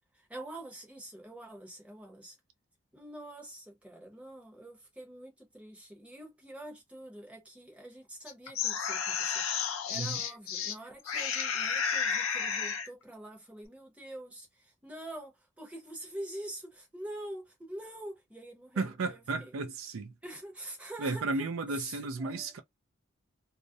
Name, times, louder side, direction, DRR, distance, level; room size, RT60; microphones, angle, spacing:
voice 1, 0.1-2.4 2.9-9.4 9.9-19.5 20.2-21.4 21.7-22.5, right 1 dB, 5° right, 0.7 m, -45 dB
sound 1, 8.3-10.8 11.1-12.9, left 7 dB, 85° left, 0.5 m, -32 dB
voice 2, 9.9-10.2 18.8-20.1 21.0-22.6, right 3 dB, 85° right, 0.5 m, -34 dB
2.4 x 2.0 x 2.6 m
head